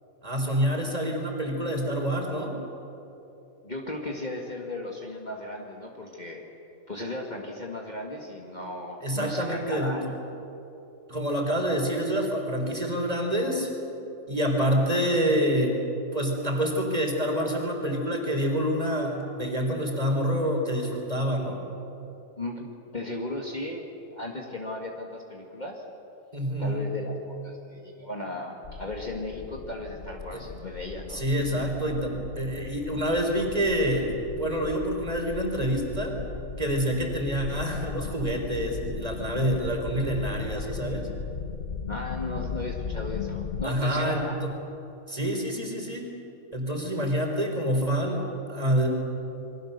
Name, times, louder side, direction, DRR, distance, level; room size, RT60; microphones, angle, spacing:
voice 1, 0.2-2.6 9.0-9.9 11.1-13.7 14.3-15.8 16.1-21.6 26.3-26.9 30.3-30.4 31.1-36.2 36.6-41.1 43.6-44.5 45.1-46.1 46.5-48.9, equal, 25° right, 1 dB, 3.9 m, -27 dB
voice 2, 3.6-6.4 6.9-10.2 22.4-23.8 24.1-25.8 26.6-31.2 41.9-44.4, left 2 dB, 30° left, -1 dB, 2.1 m, -36 dB
sound 1, 28.6-43.7, left 6 dB, 50° left, 1.1 m, -37 dB
27.5 x 23.0 x 6.7 m, 3.0 s
omnidirectional pair, 1.5 m